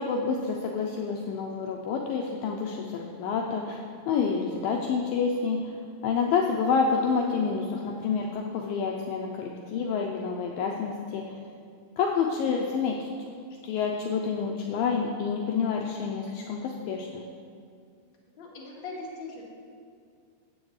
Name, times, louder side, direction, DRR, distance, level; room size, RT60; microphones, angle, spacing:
voice 1, 0.0-5.7 6.0-11.4 12.0-13.1 13.6-17.2, left 5 dB, 85° left, 0 dB, 2.1 m, -28 dB
voice 2, 18.4-19.4, left 3 dB, 40° left, -5 dB, 1.8 m, -40 dB
16.5 x 7.9 x 3.2 m, 2.2 s
omnidirectional pair, 4.6 m